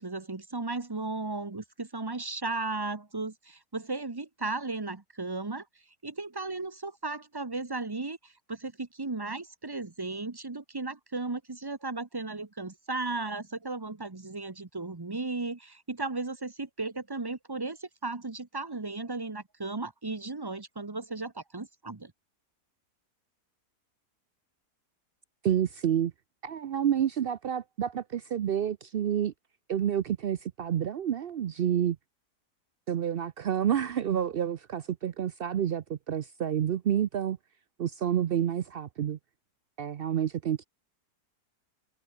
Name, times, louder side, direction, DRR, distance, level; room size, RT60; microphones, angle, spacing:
voice 1, 0.0-5.6 6.0-22.1, right 3 dB, 20° right, 0.8 m, -35 dB
voice 2, 25.4-26.1 26.4-29.3 29.7-32.0 32.9-37.4 37.8-39.2 39.8-40.6, right 9 dB, 80° right, 0.5 m, -29 dB
omnidirectional pair, 1.7 m